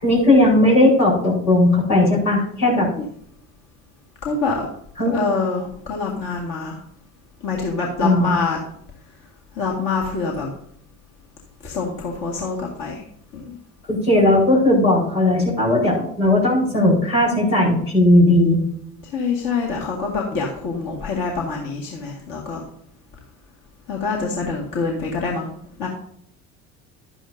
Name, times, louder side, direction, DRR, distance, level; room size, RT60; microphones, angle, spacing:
voice 1, 0.0-2.9 5.0-5.2 8.0-8.4 13.9-18.6, left 1 dB, 80° left, -5 dB, 4.6 m, -17 dB
voice 2, 4.2-4.7 5.1-6.8 7.4-8.6 9.5-10.5 11.6-13.0 13.3-13.6 19.1-22.6 23.9-25.5 25.8-25.9, left 4 dB, 50° left, -1 dB, 2.1 m, -25 dB
12.0 x 9.8 x 2.7 m, 0.67 s
figure-of-eight pair, 60°, 44 cm